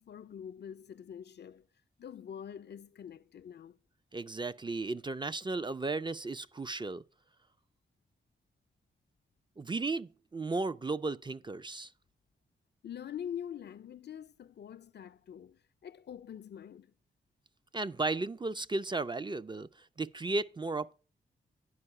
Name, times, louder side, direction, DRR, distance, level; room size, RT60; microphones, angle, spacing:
voice 1, 0.0-1.7 2.0-3.7 12.8-16.9, left 9 dB, 55° left, 0.4 m, -45 dB
voice 2, 4.1-7.0 9.6-11.9 17.7-20.9, right 3 dB, 20° right, 0.4 m, -35 dB
9.8 x 4.6 x 5.6 m
cardioid pair, 45°, 21 cm